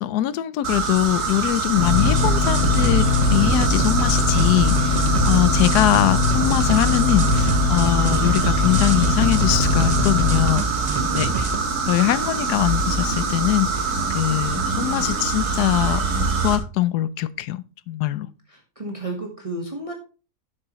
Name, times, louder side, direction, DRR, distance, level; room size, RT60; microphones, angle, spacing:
voice 1, 0.0-10.7 11.0-11.5 11.9-18.3, left 14 dB, 80° left, 1.1 m, -22 dB
sound 1, 0.6-16.6, right 4 dB, 70° right, 2.2 m, -25 dB
sound 2, 1.8-10.5, left 5 dB, 55° left, 2.9 m, -21 dB
sound 3, 2.0-11.5, right 4 dB, 40° right, 0.6 m, -27 dB
voice 2, 10.8-11.1 18.2-19.9, right 2 dB, 20° right, 1.4 m, -33 dB
10.5 x 7.6 x 3.1 m
omnidirectional pair, 1.7 m